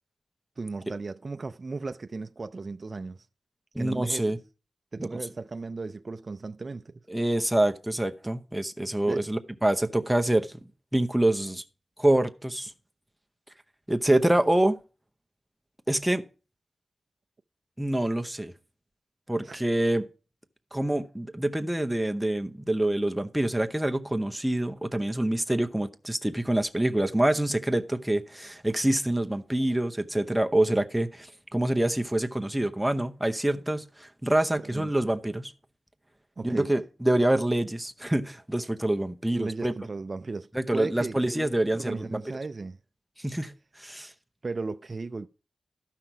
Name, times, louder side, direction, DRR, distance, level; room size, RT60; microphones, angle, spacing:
voice 1, 0.6-3.3 3.8-4.4 4.9-7.0 9.1-9.3 19.4-19.6 34.6-34.9 36.4-36.7 39.3-42.8 44.4-45.3, right 3 dB, 40° right, 0.4 m, -36 dB
voice 2, 3.7-4.4 5.0-5.1 7.1-10.5 10.9-11.6 12.0-12.7 13.9-14.8 15.9-16.2 17.8-18.5 19.3-20.1 20.7-35.5 36.4-39.7 40.5-42.2 43.2-44.1, right 1 dB, 5° right, 0.8 m, -26 dB
13.0 x 5.8 x 4.6 m
wide cardioid pair, 110°, 0 cm